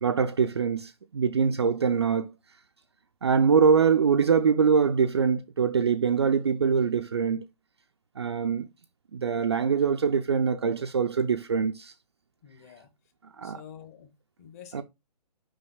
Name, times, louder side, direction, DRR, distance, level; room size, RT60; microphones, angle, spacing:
voice 1, 0.0-2.3 3.2-7.4 8.2-8.7 9.1-11.9 13.4-13.6 14.7-14.8, right 6 dB, 40° right, 0.4 m, -23 dB
voice 2, 12.4-12.9 13.4-14.1 14.4-14.8, left 9 dB, 25° left, 1.0 m, -48 dB
5.5 x 5.3 x 3.3 m
figure-of-eight pair, 140°, 21 cm